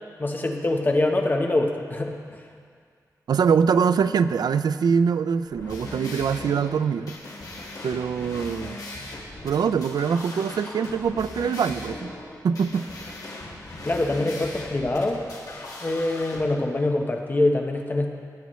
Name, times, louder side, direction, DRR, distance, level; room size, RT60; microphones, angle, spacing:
voice 1, 0.2-2.4 13.8-15.3 15.8-18.1, left 2 dB, 30° left, 3 dB, 1.0 m, -24 dB
voice 2, 3.3-7.1 7.8-8.8 9.4-12.1 12.4-12.9, right 6 dB, 80° right, 13 dB, 0.3 m, -23 dB
sound 1, 5.5-16.4, left 2 dB, 60° left, 1.9 m, -39 dB
18.0 x 9.2 x 3.1 m, 2.1 s
wide cardioid pair, 135°, 7 cm